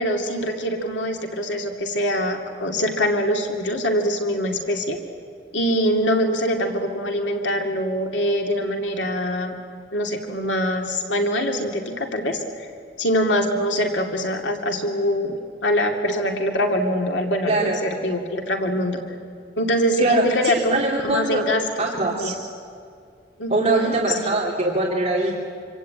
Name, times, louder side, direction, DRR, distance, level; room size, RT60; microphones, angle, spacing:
voice 1, 0.0-5.0 5.5-9.6 9.9-12.7 13.0-19.0 19.6-21.9 22.1-22.3 23.4-24.2, equal, 85° left, 3 dB, 2.4 m, -24 dB
voice 2, 20.0-21.5 21.8-22.3 23.5-25.3, right 2 dB, 35° right, -3 dB, 2.9 m, -22 dB
26.0 x 26.0 x 8.8 m, 2.3 s
head